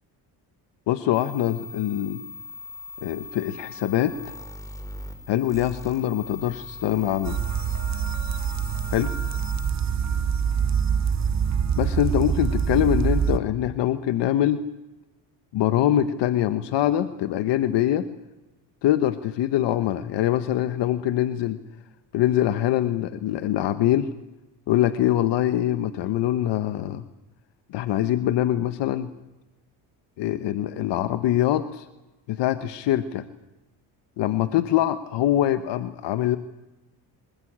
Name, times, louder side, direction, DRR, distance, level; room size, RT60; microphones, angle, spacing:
voice 1, 0.9-2.2 3.0-4.1 5.3-7.4 8.9-9.1 11.8-14.6 15.5-18.0 18.8-21.6 22.1-24.1 24.7-27.0 27.7-29.1 30.2-31.9 32.3-33.2 34.2-36.4, left 12 dB, 80° left, 11 dB, 1.2 m, -23 dB
sound 1, 1.1-9.7, left 3 dB, 10° left, 4.8 m, -40 dB
sound 2, 7.2-13.4, right 7 dB, 40° right, 1.4 m, -25 dB
27.0 x 18.0 x 8.8 m, 1.0 s
cardioid pair, 105°, 42 cm